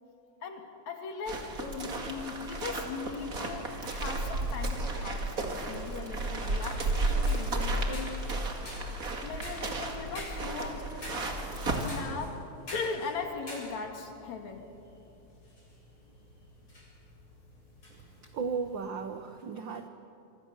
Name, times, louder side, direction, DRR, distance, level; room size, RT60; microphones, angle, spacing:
voice 1, 0.4-8.1 9.2-10.9 11.8-12.3 12.7-14.7, left 4 dB, 65° left, 4 dB, 3.5 m, -39 dB
sound 1, 1.3-12.0, right 2 dB, 30° right, 2.3 m, -33 dB
sound 2, 4.3-18.9, left 1 dB, 40° left, 8.0 m, -49 dB
voice 2, 17.9-19.9, right 5 dB, 75° right, 8 dB, 1.0 m, -36 dB
27.0 x 24.5 x 6.9 m, 2.8 s
omnidirectional pair, 3.5 m